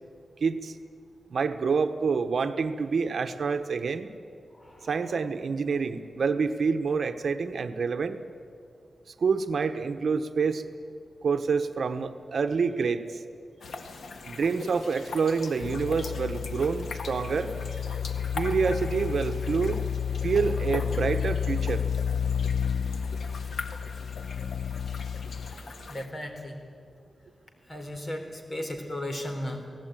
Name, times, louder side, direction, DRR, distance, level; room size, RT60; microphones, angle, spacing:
voice 1, 0.4-0.8 1.3-4.1 4.8-8.2 9.2-10.6 11.2-13.2 14.2-17.8 18.3-19.9 20.2-21.9, right 5 dB, 65° right, 8 dB, 1.2 m, -27 dB
sound 1, 13.6-26.1, left 3 dB, 90° left, 1.8 m, -41 dB
sound 2, 15.6-25.5, left 8 dB, 70° left, 0.8 m, -31 dB
voice 2, 25.9-26.6 27.7-29.7, left 1 dB, 30° left, 4 dB, 3.9 m, -35 dB
29.5 x 18.0 x 9.2 m, 2.4 s
wide cardioid pair, 140°, 0 cm